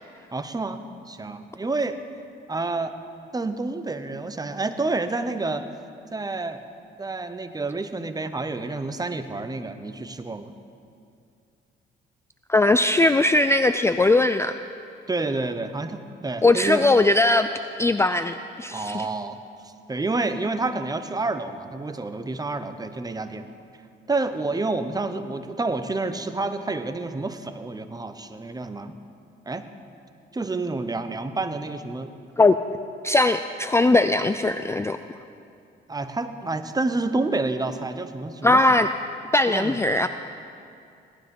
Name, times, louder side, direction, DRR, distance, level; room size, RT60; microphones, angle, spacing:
voice 1, 0.3-2.0 2.5-2.9 3.3-5.7 6.1-6.6 7.0-10.5 15.1-16.9 18.7-23.5 24.1-28.9 29.5-29.6 30.3-32.1 35.9-38.6 39.5-39.8, right 3 dB, 20° right, 9 dB, 0.9 m, -29 dB
voice 2, 12.5-14.5 16.4-17.5 17.8-19.1 32.4-32.6 33.0-35.0 38.4-38.9 39.3-40.1, left 2 dB, 15° left, 10 dB, 0.4 m, -19 dB
17.5 x 12.0 x 5.4 m, 2.5 s
cardioid pair, 90°, 20 cm